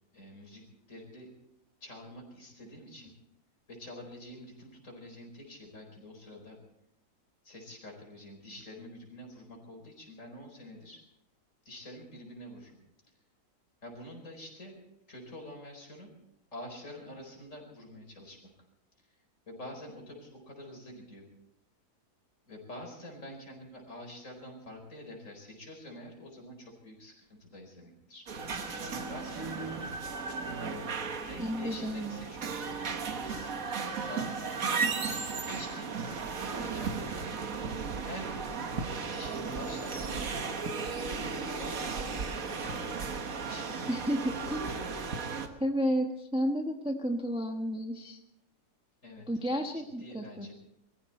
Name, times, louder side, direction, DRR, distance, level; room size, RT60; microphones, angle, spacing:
voice 1, 0.1-1.3 1.8-3.1 3.7-6.6 7.4-11.0 11.6-12.8 13.8-14.8 15.1-16.1 16.5-18.4 19.5-21.2 22.5-29.4 30.6-32.5 33.2-33.5 33.9-34.6 35.4-36.2 36.6-37.3 38.0-42.8 43.4-43.9 44.2-44.4 44.7-45.0 49.0-49.3 49.7-50.5, left 1 dB, 50° left, 1 dB, 5.0 m, -47 dB
sound 1, 28.3-45.5, right 5 dB, 60° right, 1.7 m, -35 dB
voice 2, 31.4-32.2 43.9-44.6 45.6-48.2 49.3-50.5, equal, 5° right, 3 dB, 1.0 m, -32 dB
23.0 x 14.5 x 4.3 m, 0.83 s
omnidirectional pair, 1.7 m